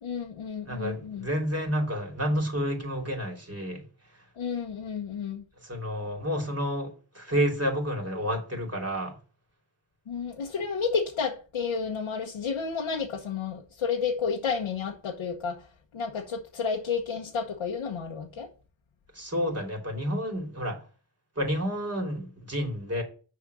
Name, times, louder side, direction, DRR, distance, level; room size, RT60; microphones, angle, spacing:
voice 1, 0.0-1.3 4.4-5.4 10.1-15.7 15.9-18.5, left 5 dB, 80° left, 1.3 m, -31 dB
voice 2, 0.6-3.8 4.1-4.2 5.6-9.2 19.1-20.9 21.3-23.0, equal, 30° right, 3.2 m, -30 dB
6.4 x 4.9 x 6.9 m
cardioid pair, 40°, 49 cm